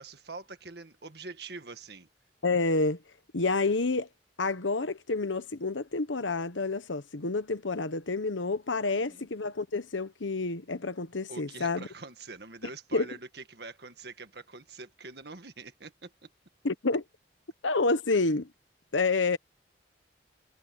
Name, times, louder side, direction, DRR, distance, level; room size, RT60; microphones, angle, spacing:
voice 1, 0.0-2.1 8.9-9.3 11.3-16.3, right 3 dB, 60° right, 1.8 m, -44 dB
voice 2, 2.4-3.0 3.3-4.1 4.4-11.9 12.9-13.1 16.6-17.0 17.6-18.5 18.9-19.4, left 3 dB, 90° left, 1.2 m, -28 dB
head